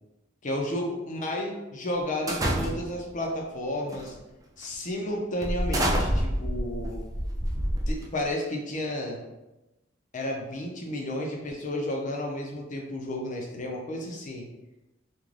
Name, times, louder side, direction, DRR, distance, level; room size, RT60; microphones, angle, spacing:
voice 1, 0.4-4.1 4.6-7.0 7.9-9.2 10.1-14.4, left 1 dB, 40° left, 0 dB, 0.5 m, -32 dB
sound 1, 2.3-3.1 3.9-4.2 4.6-4.7 5.4-8.3, equal, 20° right, 0.3 m, -28 dB
2.5 x 2.2 x 3.1 m, 0.99 s
head